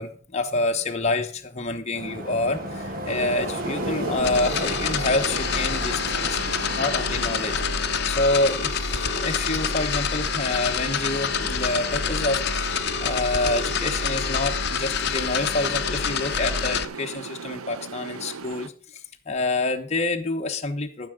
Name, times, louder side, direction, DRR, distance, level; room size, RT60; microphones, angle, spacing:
voice 1, 0.0-6.4 6.8-7.6 8.1-21.1, left 2 dB, 30° left, 4 dB, 1.0 m, -27 dB
sound 1, 1.9-7.7, right 1 dB, 40° right, 1.8 m, -33 dB
sound 2, 3.0-18.7, right 5 dB, 75° right, 0.7 m, -38 dB
sound 3, 4.2-16.9, left 6 dB, 50° left, 0.9 m, -27 dB
13.5 x 6.9 x 5.1 m, 0.42 s
head